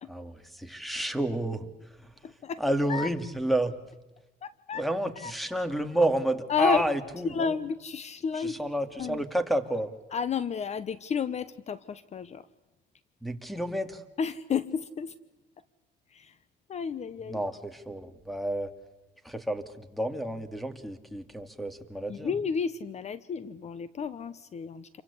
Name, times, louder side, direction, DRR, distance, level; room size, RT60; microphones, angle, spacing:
voice 1, 0.1-1.7 2.0-2.1 2.6-3.8 4.7-7.6 8.3-9.9 13.2-14.0 17.2-18.7 19.2-22.3, right 1 dB, ahead, 10 dB, 2.4 m, -30 dB
voice 2, 2.2-2.6 2.9-3.1 4.4-4.8 5.2-5.3 6.5-6.8 7.2-8.6 9.0-9.2 10.1-12.4 14.2-15.1 16.1-16.3 16.7-17.4 22.1-24.9, left 6 dB, 40° left, 16 dB, 1.0 m, -31 dB
29.0 x 24.0 x 8.4 m, 1.1 s
cardioid pair, 110°, 17 cm